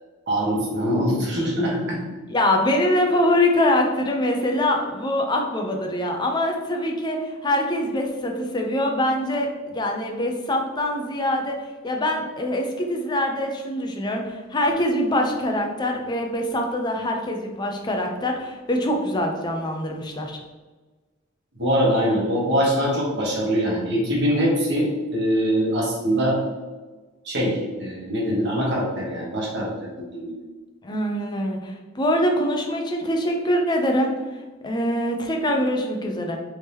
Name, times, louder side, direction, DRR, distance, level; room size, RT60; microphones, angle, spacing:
voice 1, 0.3-2.0 21.6-26.4 27.2-30.3, equal, 55° right, -3 dB, 1.2 m, -23 dB
voice 2, 2.3-11.5 11.8-20.4 30.8-34.1 34.6-36.4, left 1 dB, 20° left, 2 dB, 0.5 m, -24 dB
3.5 x 2.8 x 3.4 m, 1.3 s
head